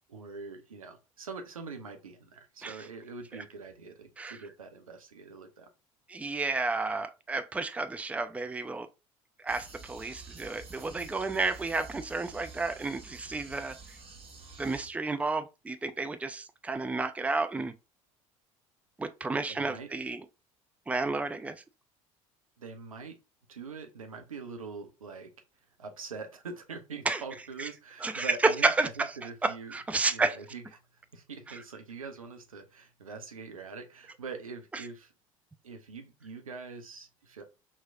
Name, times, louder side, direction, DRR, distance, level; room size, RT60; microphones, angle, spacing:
voice 1, 0.1-5.7 19.5-19.9 22.6-23.2 23.5-25.3 25.8-29.7 30.1-30.6 30.9-35.1 35.6-37.4, right 4 dB, 85° right, 0.8 m, -43 dB
voice 2, 6.1-8.9 9.4-13.7 14.6-17.7 19.0-20.2 20.9-21.6 27.1-27.2 28.0-29.1 29.4-30.4, right 3 dB, 10° right, 0.4 m, -31 dB
sound 1, 9.5-14.9, right 4 dB, 35° right, 1.6 m, -49 dB
5.7 x 3.1 x 2.5 m
figure-of-eight pair, 65°, 17 cm